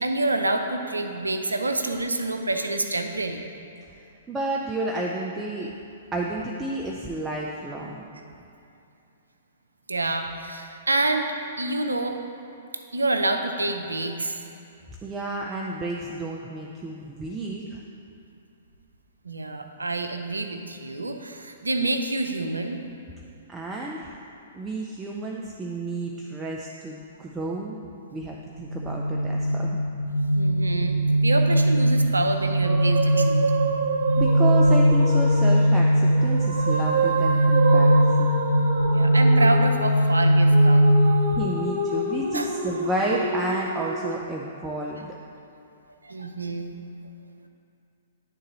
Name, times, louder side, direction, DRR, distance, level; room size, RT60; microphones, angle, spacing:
voice 1, 0.0-3.5 9.9-12.2 12.9-14.4 19.2-22.8 30.4-31.0 31.2-33.4 38.9-40.9 42.3-42.5 46.0-46.8, right 2 dB, 85° right, 6 dB, 0.5 m, -27 dB
voice 2, 4.3-5.7 6.1-8.1 15.0-17.8 23.5-24.2 24.5-27.8 28.1-29.8 34.2-38.4 41.3-45.1, right 2 dB, 15° right, -2 dB, 0.5 m, -31 dB
sound 1, 28.7-41.4, equal, 90° left, 0.3 m, -20 dB
sound 2, 32.4-44.1, right 3 dB, 55° right, 0.8 m, -28 dB
9.9 x 3.8 x 4.0 m, 2.6 s
figure-of-eight pair, 115°, 0 cm